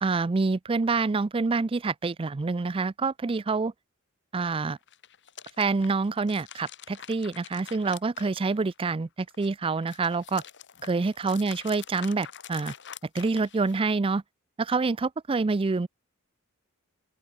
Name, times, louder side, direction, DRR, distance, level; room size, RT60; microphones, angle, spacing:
voice 1, 0.0-3.7 4.3-4.8 5.6-10.4 10.8-12.7 13.1-14.2 14.6-15.9, right 4 dB, 25° right, 0.4 m, -27 dB
sound 1, 4.8-8.9 9.3-13.9, left 9 dB, 55° left, 3.9 m, -46 dB
open air
head